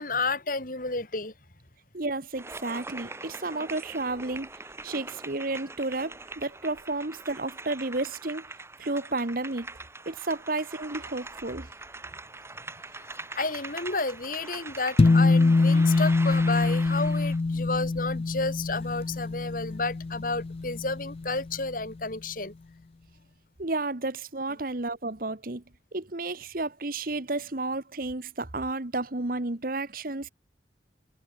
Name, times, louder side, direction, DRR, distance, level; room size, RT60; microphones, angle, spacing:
voice 1, 0.0-1.3 13.0-22.5, left 3 dB, 50° left, 4.1 m, -31 dB
voice 2, 1.9-4.5 4.8-8.4 8.8-9.7 10.0-11.7 23.6-25.6 25.9-30.3, right 2 dB, 55° right, 1.5 m, -32 dB
sound 1, 2.3-17.4, right 3 dB, 15° right, 2.1 m, -42 dB
sound 2, 15.0-21.6, left 3 dB, 35° left, 0.3 m, -24 dB
head